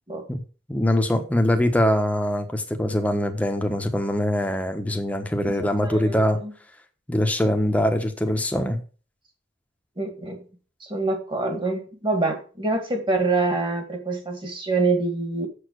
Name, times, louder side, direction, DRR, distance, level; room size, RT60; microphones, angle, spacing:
voice 1, 0.7-6.4 7.1-8.8, left 1 dB, 10° left, 1.1 m, -23 dB
voice 2, 5.4-6.5 10.0-10.5 10.8-15.5, right 3 dB, 25° right, 2.0 m, -26 dB
7.2 x 6.8 x 6.4 m
head